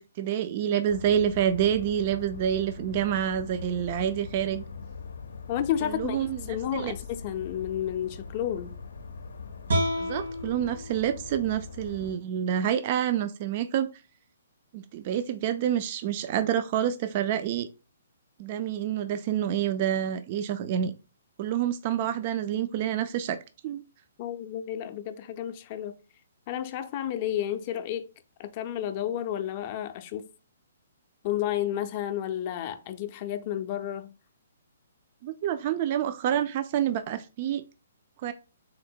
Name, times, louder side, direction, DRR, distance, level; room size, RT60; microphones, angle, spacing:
voice 1, 0.0-4.6 5.8-6.9 10.0-13.9 14.7-17.7 18.4-20.9 21.4-23.4 23.6-23.8 35.2-37.6 38.2-38.3, right 10 dB, 40° right, 0.3 m, -28 dB
sound 1, 0.9-12.1, left 5 dB, 85° left, 0.5 m, -42 dB
voice 2, 5.5-6.2 6.5-8.8 24.2-26.0 26.5-28.1 28.4-30.3 31.2-34.1, left 11 dB, 35° left, 0.4 m, -31 dB
sound 2, 9.7-12.9, equal, 75° right, 1.7 m, -32 dB
3.8 x 2.1 x 4.3 m
hypercardioid pair, 150°, 0 cm